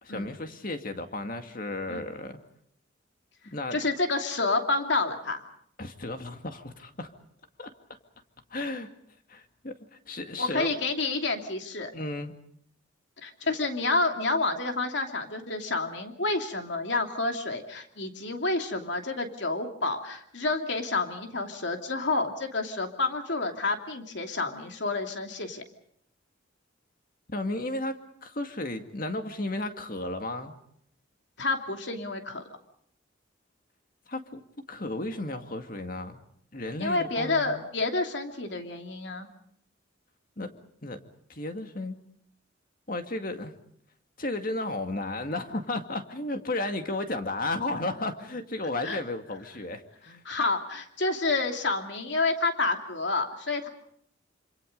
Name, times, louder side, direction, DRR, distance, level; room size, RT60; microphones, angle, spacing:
voice 1, 0.0-2.4 3.5-3.8 5.8-7.1 7.6-7.7 8.5-8.9 9.3-9.7 10.1-10.7 11.9-12.3 27.3-28.0 28.2-30.5 34.1-34.4 34.7-36.2 36.5-37.6 40.4-40.5 40.8-41.0 41.3-42.0 42.9-43.5 44.2-50.2, left 2 dB, 45° left, 6 dB, 2.1 m, -33 dB
voice 2, 3.7-5.4 10.4-11.9 13.2-25.6 31.4-32.4 36.8-39.3 48.8-49.0 50.2-53.7, left 3 dB, 65° left, 5 dB, 2.9 m, -29 dB
27.0 x 26.5 x 5.4 m, 0.68 s
head